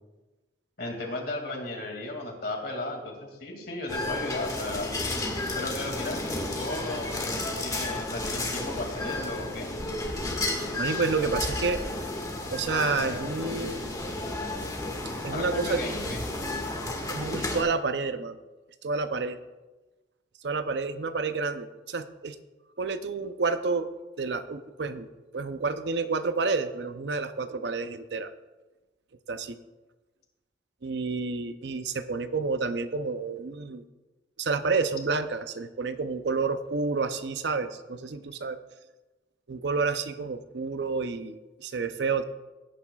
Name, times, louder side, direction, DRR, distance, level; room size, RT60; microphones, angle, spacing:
voice 1, 0.8-4.9 5.6-9.7 15.3-16.2, left 2 dB, 55° left, 2 dB, 2.3 m, -35 dB
sound 1, 3.9-17.6, left 2 dB, 20° left, 1.7 m, -32 dB
voice 2, 10.8-11.8 12.5-13.9 15.2-15.8 17.1-18.4 18.8-19.4 20.4-22.4 22.8-23.9 24.2-25.1 25.3-28.3 29.3-29.6 30.8-33.8 34.4-38.6 39.5-42.2, right 4 dB, 65° right, 10 dB, 0.6 m, -29 dB
17.5 x 9.7 x 2.3 m, 1.2 s
head